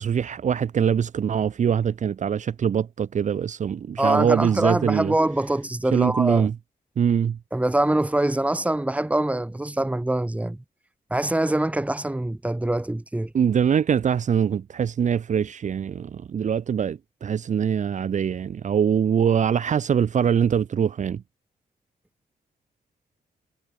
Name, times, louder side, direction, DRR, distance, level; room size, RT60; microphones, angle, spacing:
voice 1, 0.0-5.1 5.9-6.5 7.0-7.4 13.3-21.2, right 8 dB, 45° right, 1.3 m, -23 dB
voice 2, 4.0-6.5 7.5-10.6 11.1-13.3, right 1 dB, 10° right, 6.4 m, -24 dB
wide cardioid pair, 175°, 17 cm